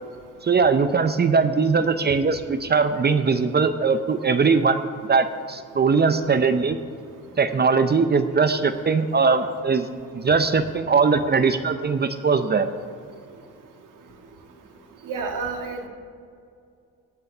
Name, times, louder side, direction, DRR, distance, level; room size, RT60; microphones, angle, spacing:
voice 1, 0.4-4.8 5.1-6.8 7.4-9.9 10.1-12.7, right 5 dB, 30° right, 10 dB, 0.7 m, -20 dB
voice 2, 15.1-15.9, right 4 dB, 75° right, 4 dB, 1.8 m, -29 dB
18.0 x 6.8 x 5.5 m, 2.3 s
cardioid pair, 75°, 32 cm